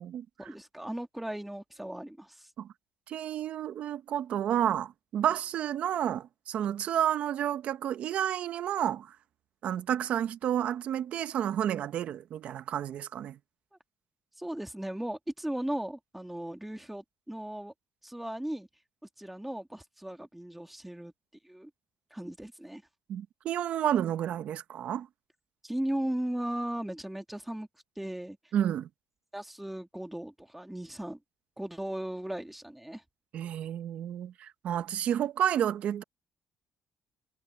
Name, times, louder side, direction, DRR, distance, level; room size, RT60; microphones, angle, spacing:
voice 1, 0.4-2.5 14.4-17.7 18.0-18.7 19.2-21.1 21.4-21.7 22.1-22.8 25.6-27.7 28.0-28.4 29.3-31.2 31.6-33.0, right 1 dB, 5° right, 1.9 m, -37 dB
voice 2, 3.1-9.1 9.6-13.4 23.1-25.1 28.5-28.9 33.3-36.0, right 10 dB, 65° right, 1.1 m, -30 dB
cardioid pair, 105°, 2 cm